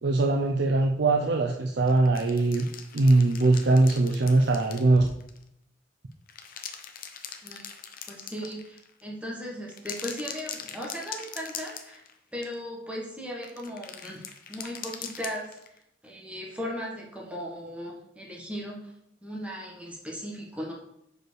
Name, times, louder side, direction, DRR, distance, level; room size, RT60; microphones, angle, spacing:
voice 1, 0.0-2.7 2.9-5.0, right 2 dB, 65° right, 3 dB, 0.6 m, -21 dB
sound 1, 1.9-5.4 6.1-9.0 9.7-12.1 12.4-12.6 13.4-15.8, left 7 dB, 50° left, 0.8 m, -41 dB
voice 2, 8.1-12.0 12.3-14.2 14.5-18.9 19.2-20.7, equal, 5° right, -3 dB, 1.5 m, -37 dB
5.2 x 4.7 x 6.3 m, 0.77 s
head